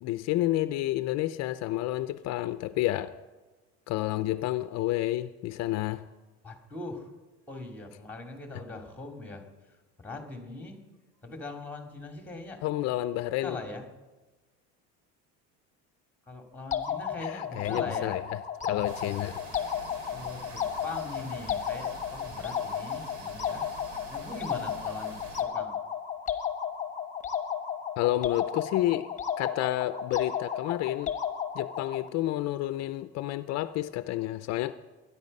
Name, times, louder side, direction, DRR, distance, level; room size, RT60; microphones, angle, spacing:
voice 1, 0.0-3.1 3.9-6.0 12.6-13.6 17.2-18.2 18.6-19.4 28.0-29.1 29.4-31.1 31.5-34.7, left 15 dB, 60° left, 12 dB, 0.6 m, -30 dB
voice 2, 6.4-7.1 7.5-9.4 10.0-10.8 11.2-12.6 13.4-13.9 16.3-18.2 20.1-23.6 24.1-25.8, left 2 dB, 5° left, 3 dB, 2.6 m, -41 dB
sound 1, 16.7-32.1, left 8 dB, 25° left, 1.3 m, -33 dB
sound 2, 18.8-25.4, right 3 dB, 70° right, 3.1 m, -47 dB
22.0 x 10.0 x 5.4 m, 1.2 s
cardioid pair, 130°, 30 cm